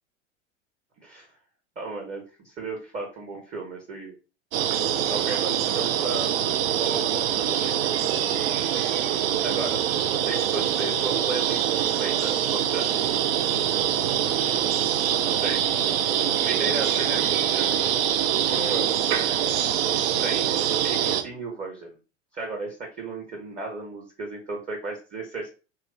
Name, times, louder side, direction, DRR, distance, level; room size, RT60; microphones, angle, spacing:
voice 1, 1.8-4.1 5.1-6.3 6.8-8.0 9.4-9.8 10.3-12.9 15.3-15.6 16.4-17.7 18.5-19.0 20.2-22.0 22.3-25.5, right 3 dB, 20° right, 0 dB, 0.7 m, -34 dB
sound 1, 4.5-21.2, right 10 dB, 50° right, 0.5 m, -24 dB
2.8 x 2.4 x 3.1 m, 0.33 s
figure-of-eight pair, 85°, 39 cm